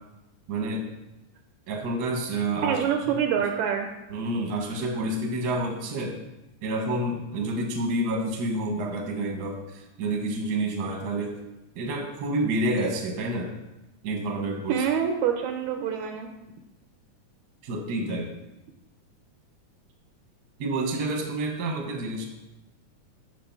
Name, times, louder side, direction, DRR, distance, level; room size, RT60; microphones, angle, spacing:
voice 1, 0.5-0.9 1.7-2.8 4.1-6.2 6.6-11.3 11.7-13.5 14.0-14.8 17.6-18.3 20.6-22.2, right 1 dB, 50° right, 1 dB, 1.2 m, -29 dB
voice 2, 2.6-3.9 14.7-16.3, right 8 dB, 80° right, 5 dB, 1.9 m, -26 dB
8.1 x 6.8 x 4.7 m, 0.99 s
omnidirectional pair, 3.6 m